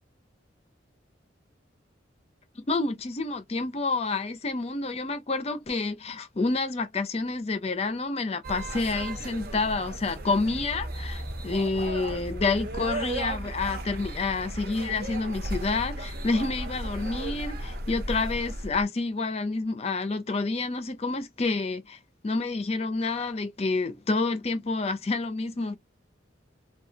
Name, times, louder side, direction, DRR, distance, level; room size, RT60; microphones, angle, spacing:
voice 1, 2.6-25.8, left 3 dB, 35° left, 0.5 m, -29 dB
sound 1, 8.4-18.8, right 1 dB, 50° right, 0.6 m, -35 dB
2.9 x 2.3 x 2.7 m
head